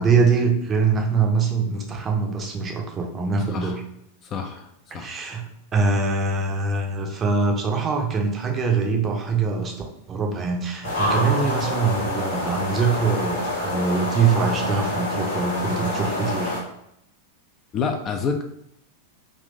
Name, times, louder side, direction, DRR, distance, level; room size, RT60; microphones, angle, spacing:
voice 1, 0.0-3.8 4.9-9.7 10.1-16.5, right 4 dB, 25° right, 2 dB, 0.6 m, -23 dB
voice 2, 3.5-3.8 4.2-4.7 4.9-5.1 17.7-18.4, left 5 dB, 30° left, 5 dB, 0.3 m, -27 dB
sound 1, 10.8-16.6, left 1 dB, 75° left, 1.2 m, -27 dB
3.5 x 2.5 x 2.6 m, 0.76 s
figure-of-eight pair, 90°, 0 cm